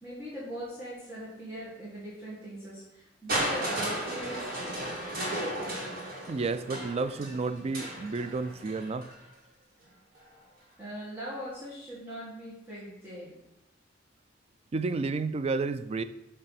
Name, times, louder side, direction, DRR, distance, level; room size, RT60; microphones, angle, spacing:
voice 1, 0.0-4.8 10.8-13.3, equal, 10° right, -9 dB, 1.8 m, -40 dB
Crushing, 3.3-9.2 10.1-10.2, right 1 dB, 50° right, 2.2 m, -34 dB
voice 2, 6.3-9.1 14.7-16.0, right 3 dB, 30° right, 13 dB, 0.3 m, -31 dB
6.6 x 3.3 x 5.7 m, 0.90 s
head